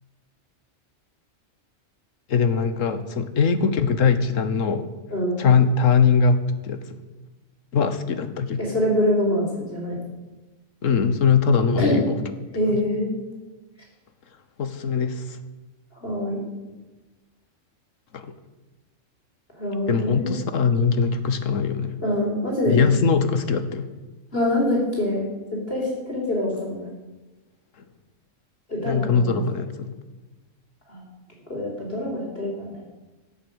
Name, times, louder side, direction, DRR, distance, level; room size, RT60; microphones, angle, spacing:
voice 1, 2.3-4.9 5.4-6.8 7.7-8.6 10.8-12.2 12.7-12.8 14.6-15.4 18.1-18.3 19.9-21.9 22.7-23.9 28.8-29.9, left 5 dB, 90° left, 11 dB, 1.4 m, -21 dB
voice 2, 8.6-9.4 9.7-10.0 11.8-12.0 12.5-13.1 16.0-16.4 19.5-20.3 22.0-22.8 24.3-25.3 25.7-26.9 28.7-29.4 30.9-31.0 31.5-32.8, left 1 dB, 50° left, -2 dB, 4.7 m, -24 dB
15.0 x 8.0 x 8.0 m, 1.2 s
omnidirectional pair, 1.3 m